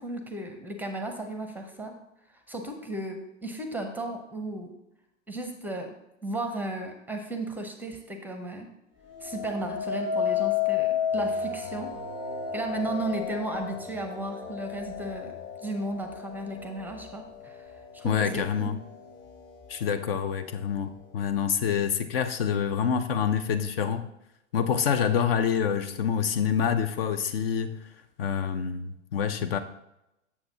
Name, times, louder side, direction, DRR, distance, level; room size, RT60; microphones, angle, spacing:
voice 1, 0.0-1.9 2.5-4.7 5.3-5.9 6.2-8.7 9.2-11.9 12.5-15.3 15.6-18.7, right 2 dB, 5° right, 0.7 m, -35 dB
sound 1, 9.1-18.3 18.8-19.3, left 7 dB, 30° left, 0.9 m, -32 dB
voice 2, 18.0-18.8 19.7-24.1 24.5-27.8 28.2-29.6, left 7 dB, 50° left, 0.6 m, -27 dB
7.9 x 7.1 x 2.8 m
figure-of-eight pair, 100°, 37 cm